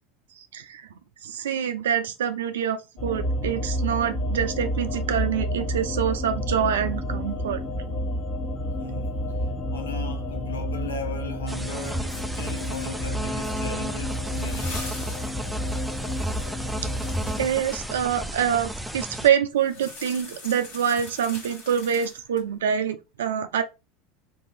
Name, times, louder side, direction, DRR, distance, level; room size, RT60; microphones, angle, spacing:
voice 1, 0.4-0.9 1.2-7.6 8.6-8.7 16.8-16.9 17.2-23.6, right 8 dB, 80° right, 0.3 m, -26 dB
sound 1, 3.0-17.5, equal, 40° left, 1.0 m, -30 dB
voice 2, 8.8-15.2, left 4 dB, 90° left, 0.7 m, -38 dB
sound 2, 11.5-19.3, right 1 dB, 5° right, 0.4 m, -33 dB
sound 3, 13.9-17.8 19.6-22.5, left 3 dB, 65° left, 1.5 m, -43 dB
2.9 x 2.6 x 3.1 m
hypercardioid pair, 85°, 0 cm